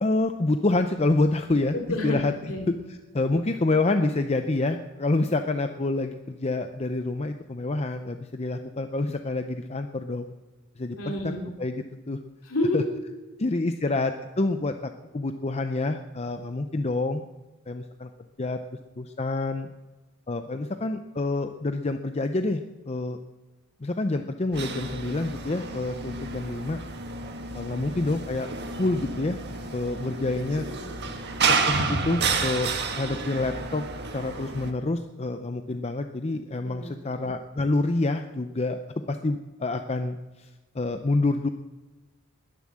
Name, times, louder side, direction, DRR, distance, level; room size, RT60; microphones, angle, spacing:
voice 1, 0.0-1.8 2.0-2.3 3.1-10.3 10.8-11.0 11.6-12.2 12.7-12.8 13.4-14.1 14.4-17.2 17.7-18.1 18.4-18.6 19.0-19.7 20.3-22.6 22.9-23.2 23.8-26.8 27.5-28.5 28.8-29.4 29.7-30.7 31.5-33.8 34.1-38.8 39.1-40.5 40.7-41.5, left 2 dB, 30° left, 7 dB, 0.6 m, -27 dB
voice 2, 1.7-2.2 2.5-2.7 11.0-11.4 12.4-13.0 30.7-31.2 36.6-36.9, left 1 dB, 60° left, 2 dB, 3.0 m, -30 dB
sound 1, 24.5-34.7, right 4 dB, 50° right, 1.6 m, -30 dB
20.5 x 7.3 x 7.5 m, 1.1 s
head